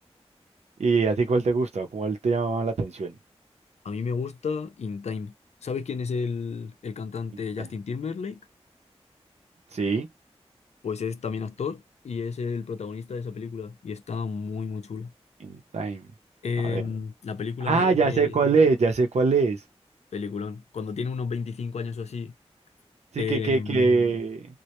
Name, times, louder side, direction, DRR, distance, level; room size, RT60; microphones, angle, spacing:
voice 1, 0.8-3.2 7.6-7.7 9.7-10.1 15.4-16.0 16.7-16.8 17.7-19.6 23.1-24.5, right 4 dB, 80° right, 0.6 m, -23 dB
voice 2, 3.8-5.3 5.6-8.4 10.8-15.1 16.4-18.4 20.1-22.3 23.2-23.9, left 5 dB, 80° left, 0.4 m, -32 dB
2.1 x 2.1 x 2.9 m
wide cardioid pair, 60°, 11 cm